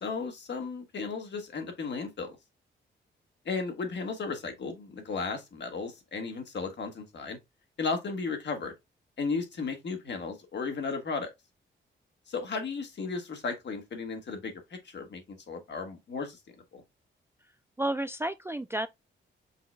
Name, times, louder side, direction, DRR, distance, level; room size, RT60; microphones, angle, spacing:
voice 1, 0.0-2.4 3.4-7.4 7.8-8.7 9.2-11.3 12.3-14.5 14.8-16.4 16.7-16.8, left 4 dB, 60° left, 1.4 m, -34 dB
voice 2, 17.8-18.9, right 1 dB, 10° right, 0.3 m, -31 dB
5.6 x 3.9 x 2.2 m
cardioid pair, 85°, 21 cm